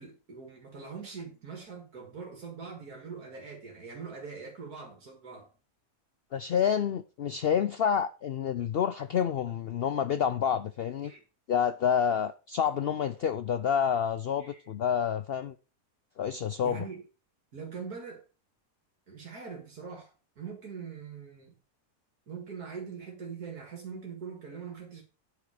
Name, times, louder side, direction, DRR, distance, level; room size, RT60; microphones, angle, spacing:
voice 1, 0.0-5.5 8.6-8.8 11.0-11.2 14.4-14.6 16.6-17.0 17.5-18.2 19.1-21.6 22.3-25.0, right 5 dB, 70° right, 2.5 m, -42 dB
voice 2, 6.3-11.1 11.5-15.6 16.2-16.8, left 8 dB, 80° left, 0.5 m, -28 dB
9.6 x 6.4 x 5.0 m
omnidirectional pair, 1.7 m